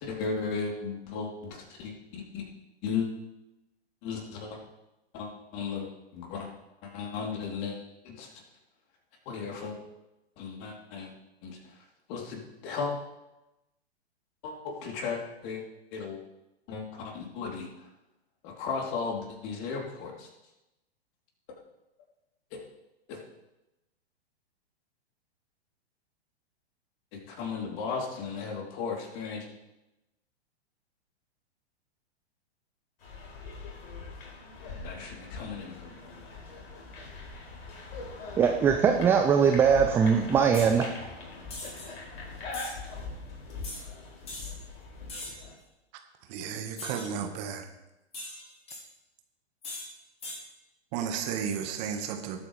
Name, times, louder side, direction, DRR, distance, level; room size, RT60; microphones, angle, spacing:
voice 1, 0.0-2.5 2.8-3.1 4.0-4.6 5.1-6.5 6.8-7.8 8.0-8.3 9.2-9.8 10.4-11.1 11.4-11.6 12.1-12.9 14.4-14.5 14.8-15.6 15.9-16.2 16.7-17.7 18.4-20.3 22.5-22.6 23.1-23.2 27.1-29.4 34.8-35.8, left 5 dB, 40° left, -1 dB, 3.3 m, -35 dB
sound 1, 33.0-45.5, left 3 dB, 60° left, 4.1 m, -42 dB
voice 2, 38.4-40.9, right 6 dB, 5° right, 4 dB, 0.3 m, -21 dB
sound 2, 40.5-40.8 41.5-41.9 42.5-42.7 43.6-43.8 44.3-44.5 45.1-45.5 46.8-47.1 48.1-48.8 49.6-49.9 50.2-50.4, left 1 dB, 20° left, 3.5 m, -40 dB
voice 3, 46.2-47.7 50.9-52.4, right 7 dB, 40° right, 6 dB, 1.5 m, -33 dB
20.0 x 8.5 x 3.3 m, 0.97 s
figure-of-eight pair, 110°, 32 cm